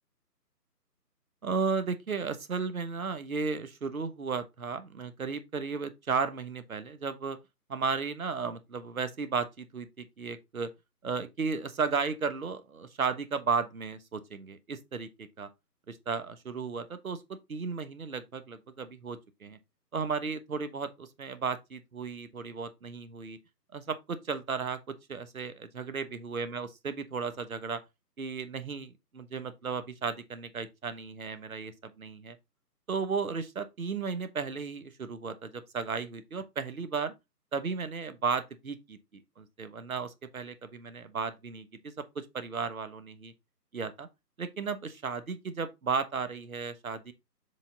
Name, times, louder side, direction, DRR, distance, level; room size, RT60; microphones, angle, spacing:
voice 1, 1.4-7.4 7.7-10.7 11.0-15.5 15.9-19.6 19.9-23.4 23.7-24.8 25.1-27.8 28.2-32.4 32.9-37.1 37.5-43.3 43.7-44.1 44.4-47.1, right 5 dB, 55° right, 1.2 m, -34 dB
7.2 x 4.0 x 3.8 m
figure-of-eight pair, 160°, 49 cm